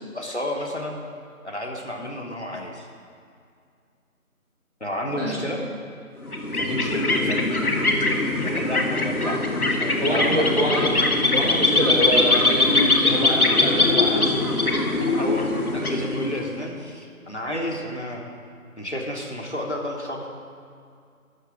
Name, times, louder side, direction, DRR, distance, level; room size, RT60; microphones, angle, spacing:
voice 1, 0.1-1.0 1.4-2.9 4.8-5.6 6.6-7.5 8.4-10.5 15.2-18.2 18.8-20.3, left 1 dB, 50° left, 0 dB, 1.2 m, -31 dB
sound 1, 6.2-16.6, left 2 dB, 85° left, 1.2 m, -22 dB
voice 2, 10.0-10.9 11.3-14.3, equal, 40° right, -4 dB, 2.1 m, -25 dB
12.0 x 4.4 x 7.2 m, 2.3 s
figure-of-eight pair, 175°, 43 cm